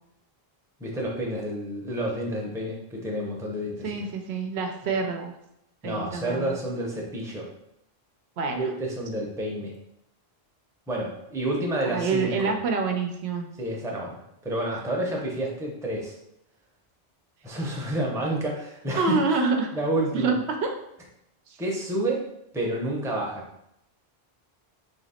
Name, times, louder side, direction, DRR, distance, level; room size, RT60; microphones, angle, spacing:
voice 1, 0.8-3.9 5.8-7.5 8.5-9.7 10.9-12.5 13.6-16.1 17.4-19.2 19.7-20.3 21.6-22.3 22.5-23.4, right 1 dB, 5° right, -2 dB, 0.6 m, -29 dB
voice 2, 3.8-5.4 5.8-6.6 8.4-8.7 11.8-13.5 18.9-19.7 20.1-20.7 21.5-21.6, right 4 dB, 75° right, 4 dB, 0.9 m, -27 dB
3.4 x 2.9 x 4.2 m, 0.80 s
omnidirectional pair, 1.1 m